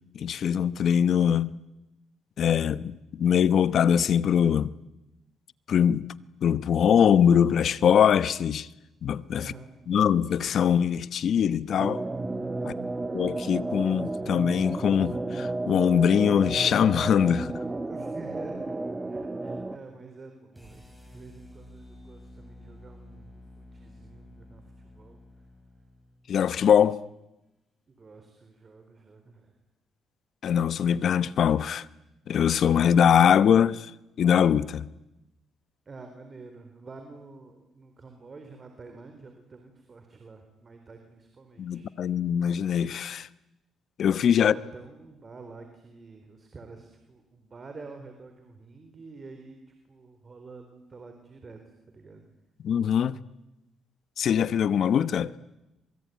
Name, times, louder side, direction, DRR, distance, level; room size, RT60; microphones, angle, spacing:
voice 1, 0.1-1.6 2.4-4.8 5.7-6.1 6.4-8.7 9.0-9.5 9.9-12.0 12.7-12.8 13.1-17.6 26.3-27.0 30.4-31.9 32.3-33.9 34.2-34.8 41.6-43.3 44.0-44.5 52.6-53.2 54.2-55.4, left 8 dB, 65° left, 1.0 m, -22 dB
voice 2, 9.4-9.7 12.6-13.0 17.9-18.8 19.1-25.2 27.9-29.6 35.9-41.9 44.4-49.6 49.9-51.6 51.9-52.2, right 3 dB, 35° right, 4.1 m, -48 dB
sound 1, 11.8-19.8, right 2 dB, 20° right, 1.9 m, -32 dB
sound 2, 20.5-26.7, left 2 dB, ahead, 7.4 m, -51 dB
26.5 x 23.0 x 9.4 m
cardioid pair, 90°, 0 cm